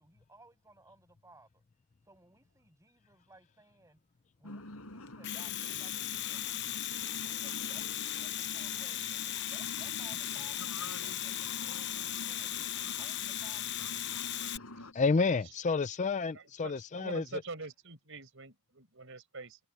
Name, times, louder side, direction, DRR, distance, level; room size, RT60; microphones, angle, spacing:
voice 1, 0.0-1.6 2.0-4.0 4.4-6.6 7.2-12.7 13.0-14.1, right 2 dB, 15° right, 6.4 m, -60 dB
sound 1, 4.4-14.9, left 2 dB, 80° left, 5.2 m, -47 dB
Domestic sounds home sounds, 5.1-14.6, left 12 dB, 55° left, 0.9 m, -37 dB
voice 2, 14.9-17.4, left 4 dB, 35° left, 0.4 m, -30 dB
voice 3, 16.6-19.6, right 3 dB, 60° right, 5.7 m, -44 dB
head